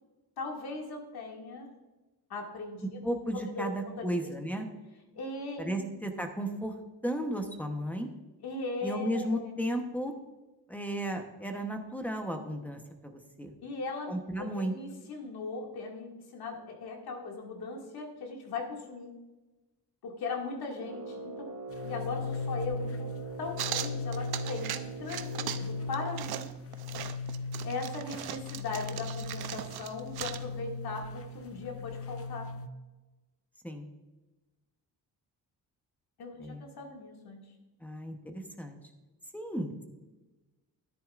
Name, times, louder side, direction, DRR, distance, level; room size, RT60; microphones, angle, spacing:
voice 1, 0.4-1.7 2.3-3.0 3.6-3.7 4.0-4.3 5.1-5.8 8.4-9.5 13.6-19.1 20.0-21.5 21.8-23.1 23.4-26.5 27.6-32.5 36.2-37.4, left 3 dB, 75° left, 0 dB, 2.3 m, -39 dB
voice 2, 3.0-4.7 5.6-6.7 7.0-8.1 8.8-10.1 10.7-13.5 14.1-14.7 33.6-33.9 36.4-36.6 37.8-38.8 39.3-39.8, equal, 5° left, 4 dB, 1.0 m, -34 dB
Brass instrument, 20.7-26.3, right 2 dB, 50° right, 1.2 m, -43 dB
sound 1, 21.7-32.7, left 3 dB, 40° left, 0.6 m, -38 dB
sound 2, 23.6-24.8 25.1-25.7 25.9-30.5, right 11 dB, 80° right, 0.7 m, -38 dB
13.0 x 10.5 x 2.5 m, 1.1 s
cardioid pair, 140°, 38 cm